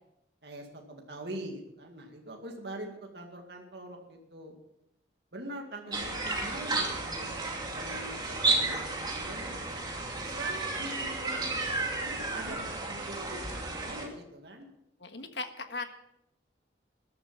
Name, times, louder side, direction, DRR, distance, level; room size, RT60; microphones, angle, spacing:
voice 1, 0.4-4.6 5.3-7.4 7.8-8.2 8.4-9.7 10.2-13.5 13.8-14.7, right 1 dB, 60° right, 2 dB, 2.1 m, -43 dB
voice 2, 5.8-6.6 12.5-12.6 15.0-15.9, left 3 dB, 70° left, 7 dB, 1.6 m, -40 dB
sound 1, 5.9-14.1, right 3 dB, 25° right, 2.7 m, -32 dB
14.0 x 11.5 x 5.6 m, 0.81 s
head